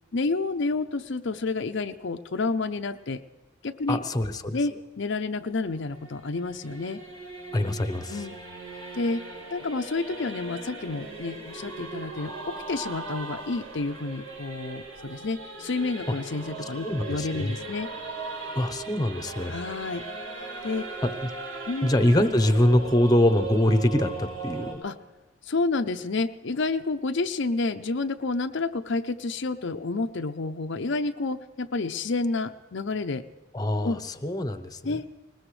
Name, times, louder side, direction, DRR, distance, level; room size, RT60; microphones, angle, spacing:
voice 1, 0.1-3.2 3.6-4.0 4.5-7.0 8.1-8.3 8.9-9.2 9.5-17.9 19.5-20.0 20.4-20.9 21.7-21.9 24.8-25.0 25.4-33.2 33.8-34.0 34.8-35.1, left 3 dB, 55° left, 6 dB, 0.6 m, -29 dB
voice 2, 3.9-4.6 7.5-8.2 16.8-17.5 18.5-19.5 21.0-21.1 21.8-24.8 33.5-34.8, left 1 dB, 20° left, 10 dB, 0.8 m, -24 dB
Singing / Musical instrument, 5.4-24.8, right 3 dB, 80° right, 6.9 m, -39 dB
20.5 x 20.0 x 3.3 m, 1.2 s
head